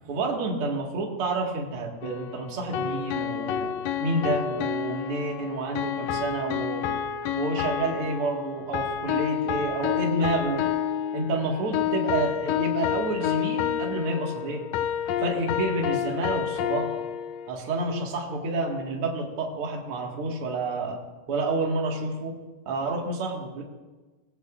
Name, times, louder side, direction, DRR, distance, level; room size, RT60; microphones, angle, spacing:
voice 1, 0.0-3.7 4.0-6.9 7.3-10.7 11.1-14.6 15.2-17.0 17.5-21.0 21.3-22.4 22.7-23.6, right 2 dB, 50° right, 0 dB, 2.5 m, -29 dB
sound 1, 2.0-17.5, left 9 dB, 80° left, 1.5 m, -29 dB
19.5 x 16.0 x 2.5 m, 1.2 s
omnidirectional pair, 3.5 m